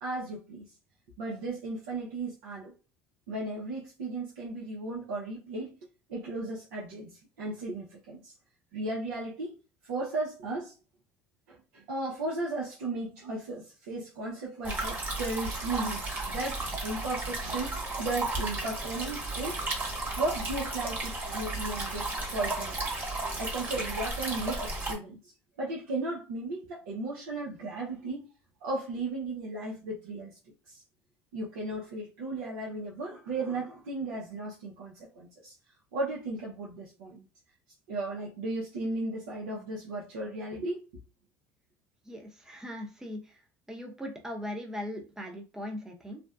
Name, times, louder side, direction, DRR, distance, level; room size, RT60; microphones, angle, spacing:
voice 1, 0.0-0.7 1.2-2.7 3.3-5.8 6.1-8.3 8.7-9.6 9.8-10.7 11.5-19.6 20.2-22.9 23.4-25.3 25.6-28.3 28.6-30.4 30.7-30.8 31.3-35.5 35.9-37.2 37.9-40.8, right 2 dB, 90° right, 0.6 m, -35 dB
sound 1, 14.6-24.9, right 2 dB, 25° right, 1.1 m, -34 dB
voice 2, 42.1-43.3 43.7-46.2, left 1 dB, 5° right, 0.7 m, -39 dB
2.5 x 2.1 x 2.3 m
supercardioid pair, 95°, 8 cm